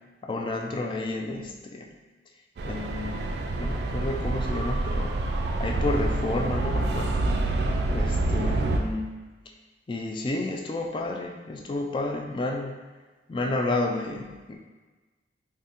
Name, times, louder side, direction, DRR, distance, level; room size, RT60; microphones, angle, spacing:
voice 1, 0.2-1.9 2.6-5.2 5.6-7.2 7.9-9.1 9.9-12.7 13.3-14.6, left 2 dB, 30° left, 2 dB, 0.3 m, -31 dB
sound 1, 2.6-8.8, right 2 dB, 65° right, 0.4 m, -27 dB
4.0 x 2.1 x 3.5 m, 1.3 s
head